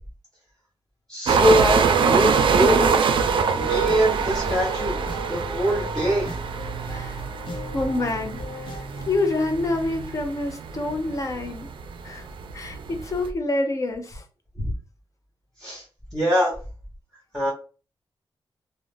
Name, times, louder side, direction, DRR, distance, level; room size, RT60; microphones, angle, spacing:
voice 1, 1.1-3.0 3.5-5.0 5.3-6.3 14.6-14.7 15.6-15.8 16.1-16.5 17.3-17.5, equal, 5° left, -6 dB, 1.0 m, -23 dB
sound 1, 1.3-13.3, right 6 dB, 75° right, 0.4 m, -24 dB
sound 2, 3.4-9.1, equal, 80° left, 0.7 m, -37 dB
voice 2, 7.7-11.7 12.0-12.3 12.5-14.2, left 2 dB, 40° left, 5 dB, 0.5 m, -27 dB
2.5 x 2.1 x 3.2 m, 0.36 s
wide cardioid pair, 125°, 9 cm